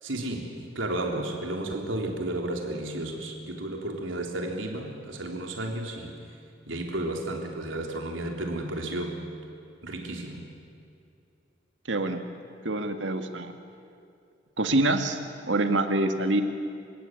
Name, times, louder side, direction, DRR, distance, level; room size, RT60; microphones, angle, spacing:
voice 1, 0.0-6.2 6.7-9.3 9.8-10.4, right 1 dB, 90° right, 2 dB, 3.7 m, -33 dB
voice 2, 11.9-12.2 12.6-13.5 14.6-15.2 15.4-16.4, right 2 dB, 70° right, 6 dB, 2.0 m, -25 dB
28.0 x 17.0 x 9.3 m, 2.5 s
head